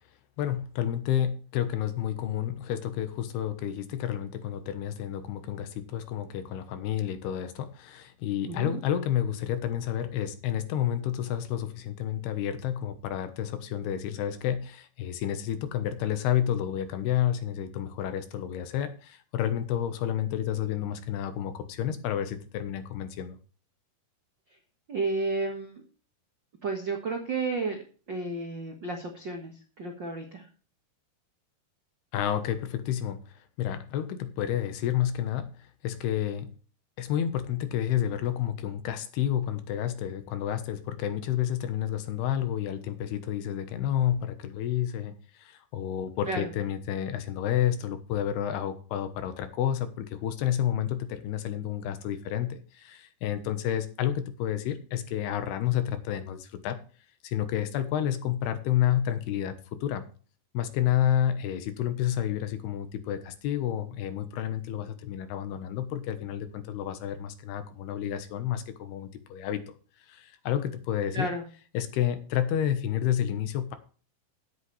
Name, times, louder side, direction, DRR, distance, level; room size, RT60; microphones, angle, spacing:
voice 1, 0.4-23.4 32.1-33.2 33.6-35.5 35.8-36.5 37.0-56.8 57.2-60.1 60.5-69.7 70.1-71.3 71.7-73.8, left 10 dB, 85° left, 9 dB, 3.1 m, -30 dB
voice 2, 8.4-8.8 24.5-24.6 24.9-25.8 26.6-30.5 46.2-46.5 71.1-71.4, right 3 dB, 75° right, 2 dB, 1.0 m, -32 dB
15.5 x 8.2 x 3.3 m, 0.39 s
omnidirectional pair, 4.6 m